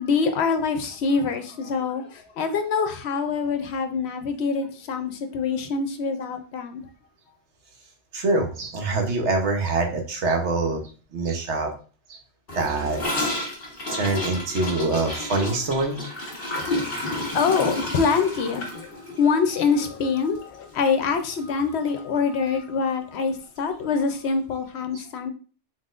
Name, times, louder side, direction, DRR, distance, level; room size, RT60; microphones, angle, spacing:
voice 1, 0.0-6.8 16.7-16.9 17.3-18.9 19.2-25.3, left 5 dB, 65° left, 7 dB, 0.9 m, -25 dB
voice 2, 8.1-10.8 11.1-11.7 12.1-12.2 12.5-13.3 13.9-16.1, right 3 dB, 70° right, 3 dB, 1.2 m, -25 dB
Gurgling / Toilet flush, 12.5-20.7 21.0-21.1 21.4-21.9 22.1-22.2 22.5-22.6 23.6-23.7, left 1 dB, 50° left, 1.6 m, -31 dB
4.1 x 3.9 x 2.4 m, 0.37 s
omnidirectional pair, 1.2 m